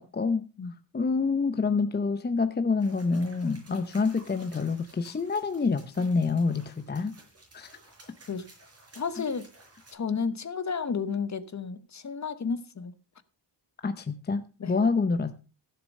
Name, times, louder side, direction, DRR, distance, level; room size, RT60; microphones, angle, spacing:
voice 1, 0.9-7.1 7.5-7.8 13.8-14.4 14.7-15.3, left 4 dB, 25° left, 9 dB, 0.7 m, -27 dB
sound 1, 2.8-9.9, right 2 dB, 35° right, 6.1 m, -55 dB
voice 2, 8.9-9.5 9.9-12.9 14.6-14.7, left 5 dB, 40° left, 13 dB, 1.0 m, -32 dB
15.0 x 6.8 x 5.3 m, 0.34 s
wide cardioid pair, 135°, 43 cm